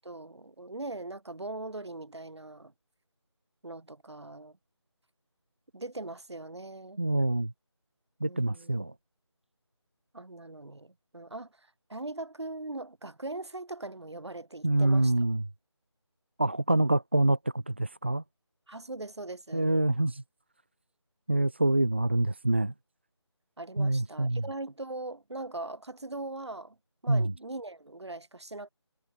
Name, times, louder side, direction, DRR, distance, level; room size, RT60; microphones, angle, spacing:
voice 1, 0.0-2.7 3.6-4.6 5.7-7.0 8.2-8.7 10.1-15.1 18.7-19.7 21.6-21.8 23.6-26.8 27.0-28.7, right 2 dB, 65° right, 7.8 m, -40 dB
voice 2, 7.0-7.5 8.2-8.9 14.6-15.4 16.4-18.2 19.5-20.2 21.3-22.7 23.8-24.4 27.1-27.3, right 2 dB, 25° right, 0.8 m, -26 dB
figure-of-eight pair, 180°, 15 cm